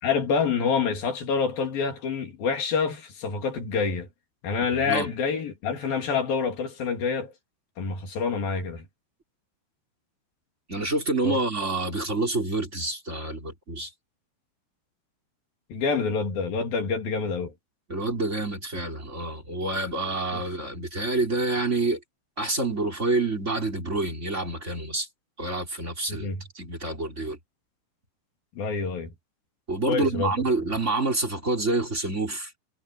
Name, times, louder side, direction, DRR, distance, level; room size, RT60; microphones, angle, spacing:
voice 1, 0.0-4.1 4.4-7.3 7.8-8.9 11.2-11.4 15.7-17.5 20.3-20.4 26.1-26.4 28.6-29.1 29.9-30.3 30.6-30.7, left 5 dB, 50° left, 4.5 m, -27 dB
voice 2, 4.7-5.1 10.7-13.9 17.9-22.0 22.4-25.1 25.4-26.3 26.5-27.4 29.7-32.5, right 2 dB, 15° right, 4.0 m, -27 dB
omnidirectional pair, 5.5 m